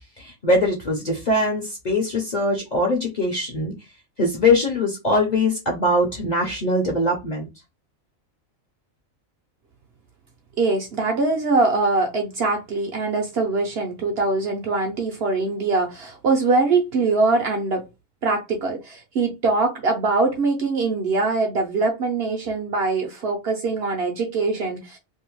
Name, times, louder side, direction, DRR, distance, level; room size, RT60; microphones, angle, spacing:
voice 1, 0.2-3.7 4.2-7.5, left 1 dB, 45° left, 0.6 m, -22 dB
voice 2, 10.6-17.8 18.2-25.0, right 3 dB, 60° right, 0.7 m, -22 dB
2.6 x 2.1 x 3.0 m
omnidirectional pair, 1.4 m